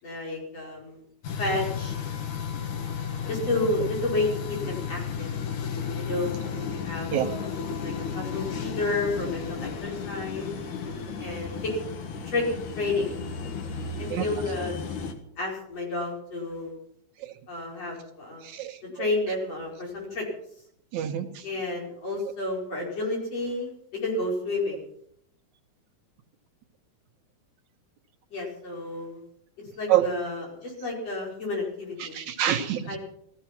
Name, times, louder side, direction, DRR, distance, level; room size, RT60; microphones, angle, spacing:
voice 1, 0.0-1.0 1.4-2.0 3.3-5.3 6.0-6.4 6.8-10.5 11.2-11.7 12.2-12.5 12.8-13.2 14.0-14.8 15.4-16.7 17.5-18.5 18.9-20.2 21.4-23.7 24.0-24.8 28.3-29.2 29.8-32.2 32.9-33.0, left 2 dB, 55° left, -2 dB, 6.2 m, -31 dB
sound 1, 1.2-15.1, left 6 dB, 80° left, 3.1 m, -33 dB
voice 2, 18.4-18.8 20.9-21.3 29.9-30.1 32.0-33.0, right 12 dB, 75° right, 5 dB, 2.6 m, -26 dB
17.0 x 14.5 x 5.9 m, 0.71 s
omnidirectional pair, 3.5 m